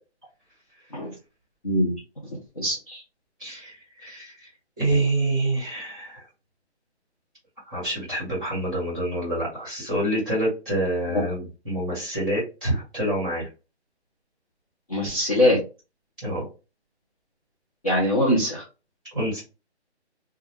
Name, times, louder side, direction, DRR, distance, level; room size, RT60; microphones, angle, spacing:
voice 1, 2.6-3.0 14.9-15.6 17.8-18.6, left 1 dB, 35° left, -5 dB, 0.5 m, -22 dB
voice 2, 3.4-4.5 4.8-6.3 7.6-13.5 16.2-16.4 19.1-19.4, right 1 dB, ahead, -6 dB, 1.1 m, -27 dB
2.3 x 2.2 x 3.2 m, 0.31 s
hypercardioid pair, 165°, 34 cm